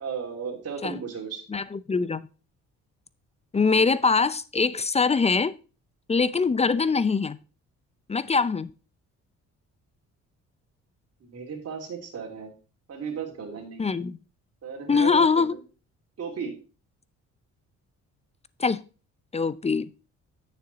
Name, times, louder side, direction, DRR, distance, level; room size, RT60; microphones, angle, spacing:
voice 1, 0.0-1.4 11.2-12.5 12.9-13.9 14.6-15.6 16.2-16.6, right 6 dB, 55° right, 1 dB, 2.9 m, -35 dB
voice 2, 1.5-2.2 3.5-5.5 6.1-7.4 8.1-8.7 13.8-14.2 14.9-15.5 18.6-18.8 19.3-19.9, left 4 dB, 20° left, 17 dB, 0.5 m, -23 dB
9.3 x 6.7 x 4.0 m, 0.35 s
cardioid pair, 90°, 30 cm